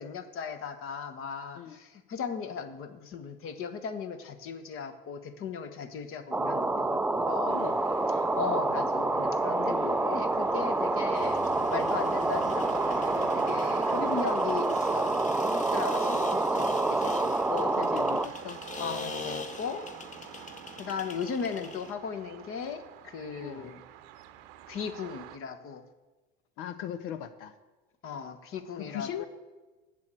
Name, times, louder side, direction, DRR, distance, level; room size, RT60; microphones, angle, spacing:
voice 1, 0.0-7.6 8.2-17.8 18.8-19.9 20.8-23.8 24.7-25.8 28.0-29.2, left 6 dB, 45° left, 8 dB, 1.2 m, -37 dB
sound 1, 6.3-18.3, right 2 dB, 5° right, 0.4 m, -27 dB
voice 2, 7.4-7.8 9.6-9.9 11.0-11.1 13.9-14.2 17.7-18.6 23.4-23.7 26.6-27.5 28.8-29.2, left 10 dB, 70° left, 10 dB, 0.7 m, -39 dB
sound 2, 7.5-25.4, right 12 dB, 70° right, 0.8 m, -46 dB
sound 3, 11.1-21.9, left 4 dB, 25° left, 0.9 m, -43 dB
7.8 x 7.4 x 7.6 m, 1.2 s
hypercardioid pair, 80°, 29 cm